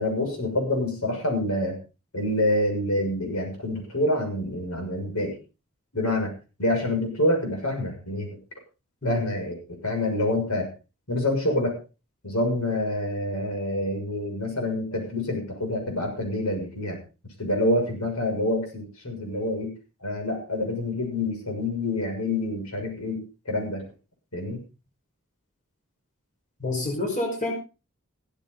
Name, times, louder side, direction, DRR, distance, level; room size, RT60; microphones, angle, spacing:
voice 1, 0.0-1.8 2.1-5.4 5.9-6.3 6.6-8.3 9.0-10.7 11.1-11.8 12.2-17.0 17.4-23.8 24.3-24.6, left 1 dB, 90° left, 3 dB, 6.5 m, -27 dB
voice 2, 26.6-27.5, left 2 dB, 35° left, 2 dB, 5.4 m, -28 dB
16.0 x 14.0 x 3.9 m, 0.32 s
head